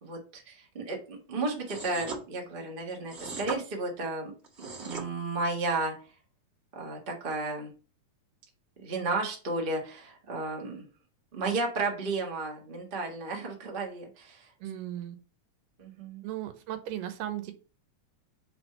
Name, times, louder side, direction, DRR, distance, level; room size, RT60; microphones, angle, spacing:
voice 1, 0.0-4.3 4.6-5.9 6.7-7.7 8.8-10.9 11.3-14.5 15.8-16.2, right 3 dB, 55° right, 0 dB, 0.6 m, -33 dB
sound 1, 1.7-2.2 3.1-3.6 4.4-5.1, right 4 dB, 25° right, 1.5 m, -38 dB
voice 2, 14.6-15.2 16.2-17.5, right 12 dB, 80° right, 9 dB, 2.5 m, -36 dB
5.0 x 4.4 x 5.4 m, 0.35 s
omnidirectional pair, 3.9 m